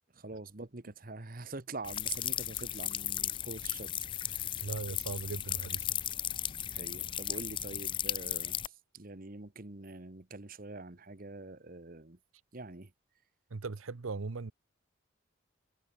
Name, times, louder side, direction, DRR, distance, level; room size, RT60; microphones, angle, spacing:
voice 1, 0.1-4.7 6.7-12.2 12.5-12.9, right 3 dB, 45° right, 1.2 m, -45 dB
sound 1, 1.8-8.7, left 11 dB, 25° left, 0.4 m, -36 dB
sound 2, 1.9-7.2, left 14 dB, 70° left, 6.4 m, -55 dB
voice 2, 4.6-5.9 13.5-14.5, right 4 dB, 90° right, 0.8 m, -38 dB
head